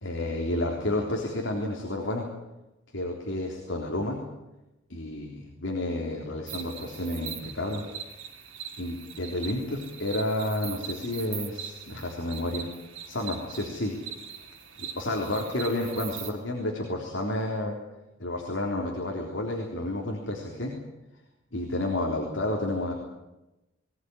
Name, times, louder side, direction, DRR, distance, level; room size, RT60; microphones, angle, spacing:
voice 1, 0.0-2.2 2.9-4.2 4.9-7.8 8.8-12.7 13.1-14.0 14.8-17.8 18.2-20.7 21.5-22.9, left 1 dB, 70° left, 0 dB, 3.7 m, -30 dB
sound 1, 6.5-16.3, right 8 dB, 75° right, 3.1 m, -41 dB
21.0 x 18.5 x 9.8 m, 0.99 s
head